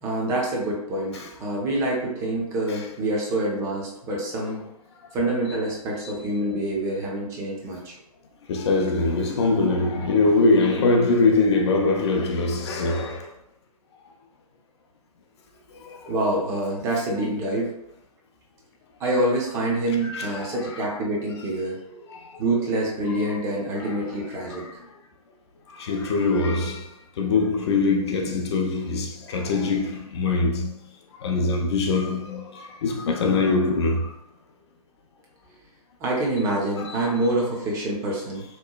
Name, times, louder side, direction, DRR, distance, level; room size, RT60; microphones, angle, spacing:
voice 1, 0.0-4.6 5.1-8.0 8.6-8.7 16.1-17.7 19.0-21.8 22.4-24.7 36.0-38.4, right 1 dB, 15° right, 0.5 m, -26 dB
voice 2, 8.5-13.2 15.8-16.1 20.0-20.6 23.8-23.9 24.5-24.6 25.8-26.8 27.2-30.7 31.2-32.4 32.8-34.1 36.8-36.9, left 3 dB, 45° left, 0.5 m, -22 dB
2.9 x 2.1 x 2.2 m
figure-of-eight pair, 125°, 20 cm